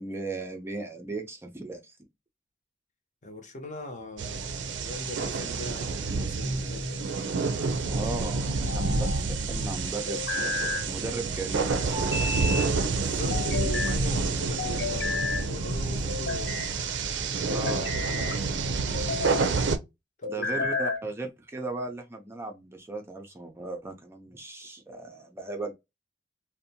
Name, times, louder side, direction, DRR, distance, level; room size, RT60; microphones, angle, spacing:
voice 1, 0.0-2.0 7.9-10.2 10.9-12.0 17.5-17.9 18.2-18.4 20.3-25.7, right 2 dB, 15° right, 0.4 m, -37 dB
voice 2, 3.2-7.2 13.0-16.7 17.4-18.5 20.2-20.6, left 2 dB, 45° left, 0.7 m, -41 dB
sound 1, 4.2-19.8, right 4 dB, 80° right, 0.4 m, -29 dB
sound 2, 6.4-7.1 8.4-9.2 10.1-10.9 11.9-12.7 13.3-14.0 14.6-15.4 16.1-16.7 17.5-18.4 18.9-19.5 20.2-21.1, left 3 dB, 70° left, 1.2 m, -32 dB
2.6 x 2.1 x 2.7 m
head